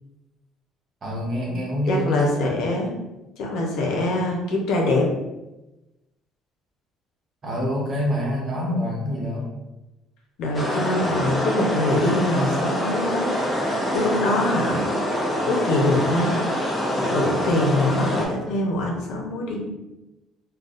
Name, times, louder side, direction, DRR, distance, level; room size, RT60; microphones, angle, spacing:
voice 1, 1.0-2.3 7.4-9.5, equal, 35° right, -3 dB, 1.0 m, -26 dB
voice 2, 1.9-2.9 3.4-5.1 10.4-13.3 13.6-14.9 15.4-16.4 17.0-19.6, left 1 dB, 75° left, -1 dB, 0.8 m, -24 dB
sound 1, 10.5-18.3, equal, 10° left, 0.8 m, -25 dB
3.8 x 2.3 x 2.5 m, 1.0 s
cardioid pair, 125°, 0 cm